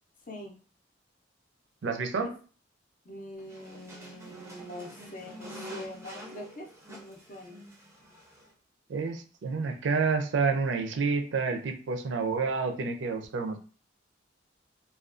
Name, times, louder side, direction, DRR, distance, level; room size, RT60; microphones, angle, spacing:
voice 1, 1.8-2.3 8.9-13.6, right 4 dB, 75° right, 6 dB, 0.4 m, -29 dB
voice 2, 3.0-7.6, equal, 45° left, 1 dB, 0.5 m, -43 dB
sound 1, 3.4-8.5, equal, 15° right, 0.4 m, -46 dB
2.4 x 2.2 x 2.4 m, 0.39 s
head